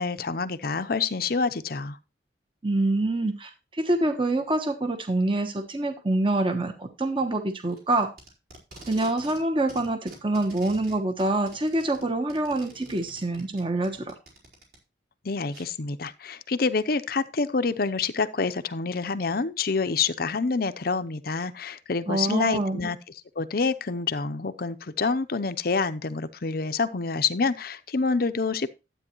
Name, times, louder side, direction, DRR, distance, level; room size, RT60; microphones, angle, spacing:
voice 1, 0.0-2.0 15.2-23.0 23.4-28.8, left 4 dB, 55° left, 0.7 m, -27 dB
voice 2, 2.6-8.1 8.9-14.1 22.1-22.9, right 2 dB, 30° right, 1.1 m, -26 dB
Packing tape duct tape, 7.7-9.4 9.7-14.8 15.5-15.6, right 1 dB, 55° right, 4.5 m, -47 dB
12.5 x 8.6 x 3.0 m
head